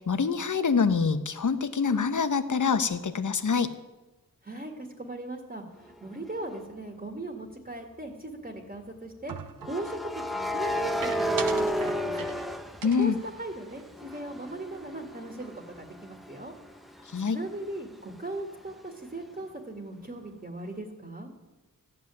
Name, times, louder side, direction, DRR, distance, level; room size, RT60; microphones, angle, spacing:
voice 1, 0.0-3.7 12.8-13.2 17.1-17.4, left 5 dB, 60° left, 11 dB, 1.0 m, -25 dB
voice 2, 4.4-9.3 9.7-12.3 13.0-16.5 17.2-21.3, right 1 dB, 25° right, 2 dB, 2.0 m, -39 dB
sound 1, 6.3-6.5 9.6-13.5 13.9-17.5, equal, ahead, 0.8 m, -32 dB
sound 2, 9.3-9.9 11.0-12.5 12.8-14.5 14.8-15.0 15.3-15.8, right 7 dB, 75° right, 0.8 m, -42 dB
14.5 x 7.0 x 9.7 m, 1.1 s
wide cardioid pair, 75°, 35 cm